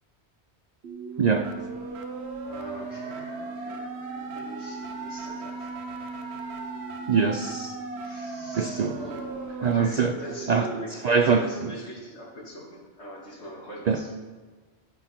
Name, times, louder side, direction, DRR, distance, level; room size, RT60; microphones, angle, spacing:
sound 1, 0.8-10.8, right 3 dB, 75° right, 1.1 m, -36 dB
voice 1, 1.2-1.5 7.1-7.7 8.6-9.0 9.6-10.1 10.5-10.7 11.0-11.4 13.9-14.0, right 5 dB, 55° right, 7 dB, 0.4 m, -23 dB
voice 2, 2.4-5.7 7.9-14.2, equal, 80° left, -3 dB, 2.6 m, -42 dB
13.5 x 5.9 x 4.4 m, 1.4 s
omnidirectional pair, 1.1 m